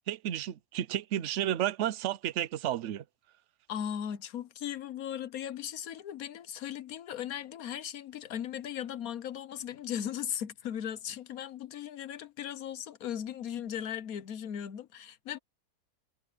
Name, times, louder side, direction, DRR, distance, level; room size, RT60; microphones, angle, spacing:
voice 1, 0.1-3.0, right 11 dB, 60° right, 0.9 m, -32 dB
voice 2, 3.7-15.4, left 9 dB, 65° left, 1.3 m, -37 dB
omnidirectional pair, 1.7 m